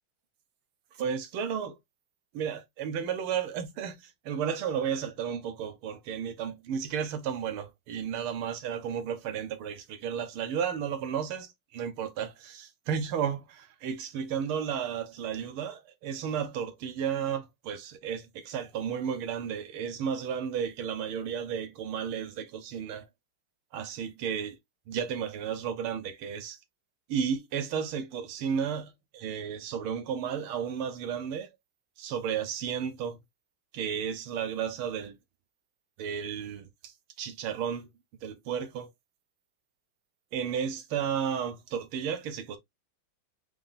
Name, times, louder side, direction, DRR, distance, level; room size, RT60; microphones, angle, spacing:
voice 1, 1.0-1.8 2.3-23.1 23.7-24.6 24.9-26.6 27.1-31.5 32.0-33.2 33.7-35.2 36.0-37.9 38.2-38.9 40.3-42.6, right 7 dB, 85° right, 1.8 m, -33 dB
5.5 x 3.6 x 2.5 m
omnidirectional pair, 2.3 m